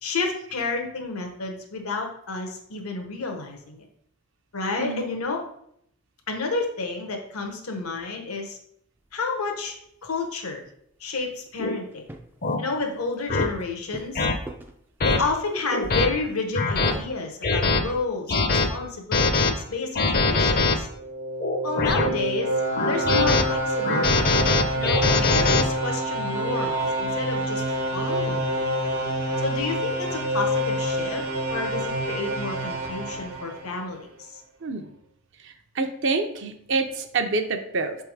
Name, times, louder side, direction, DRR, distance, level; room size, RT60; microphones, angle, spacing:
voice 1, 0.0-3.8 4.5-5.4 6.3-8.6 9.1-9.7 10.0-10.6 11.0-12.0 12.6-14.3 15.0-20.9 21.6-22.5 22.9-24.3 24.7-28.6 29.4-31.2 31.5-34.4, left 3 dB, 80° left, 3 dB, 1.0 m, -30 dB
sound 1, 9.1-9.2 11.2-11.3 11.5-11.6 11.9-12.5 12.8-15.2 15.5-17.0, right 1 dB, 10° right, 0.3 m, -40 dB
sound 2, 11.6-11.8 12.4-12.6 13.3-13.5 14.2-14.3 15.0-15.2 15.7-16.1 16.6-16.9 17.4-17.8 18.3-18.7 19.1-19.5 20.0-20.8 21.4-22.1 22.8-23.4 23.8-25.6, left 3 dB, 40° left, 0.6 m, -22 dB
sound 3, 20.9-34.0, right 1 dB, 75° right, 1.1 m, -27 dB
voice 2, 35.4-38.0, right 3 dB, 55° right, 6 dB, 0.6 m, -27 dB
5.7 x 3.5 x 4.7 m, 0.71 s
head